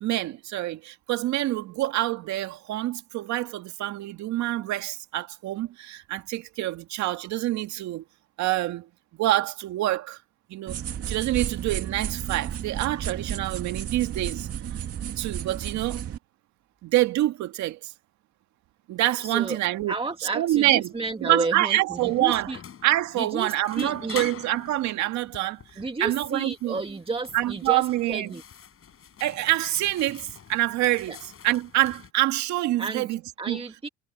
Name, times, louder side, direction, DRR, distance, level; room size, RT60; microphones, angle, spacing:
voice 1, 0.0-8.0 8.4-8.9 9.1-10.2 10.5-10.8 11.1-14.5 15.2-16.0 16.8-17.9 18.9-19.9 20.3-20.9 21.2-22.5 22.8-26.8 27.3-28.3 29.2-33.2 33.5-33.6, right 16 dB, 70° right, 2.0 m, -26 dB
sound 1, 10.7-16.2, right 9 dB, 55° right, 2.5 m, -32 dB
voice 2, 19.2-19.6 19.9-22.6 23.2-24.2 25.8-28.4 31.1-31.2 32.8-33.1 33.4-33.9, right 3 dB, 20° right, 1.8 m, -32 dB
sound 2, 19.7-32.1, left 8 dB, 50° left, 7.7 m, -45 dB
supercardioid pair, 80°, 29 cm